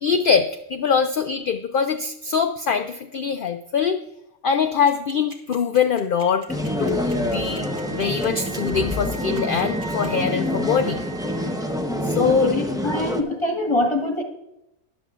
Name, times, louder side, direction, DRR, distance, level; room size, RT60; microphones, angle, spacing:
voice 1, 0.0-4.0 4.4-6.5 6.8-11.0 12.0-12.5, left 6 dB, 65° left, 7 dB, 0.5 m, -23 dB
sound 1, 4.9-10.1, right 3 dB, 40° right, 1.6 m, -44 dB
Wind instrument woodwind instrument, 6.0-12.0, right 4 dB, 60° right, 1.9 m, -42 dB
sound 2, 6.5-13.2, equal, 5° right, 0.5 m, -26 dB
voice 2, 12.2-14.2, left 2 dB, 20° left, 2 dB, 1.3 m, -24 dB
14.5 x 10.5 x 2.4 m, 0.88 s
omnidirectional pair, 1.4 m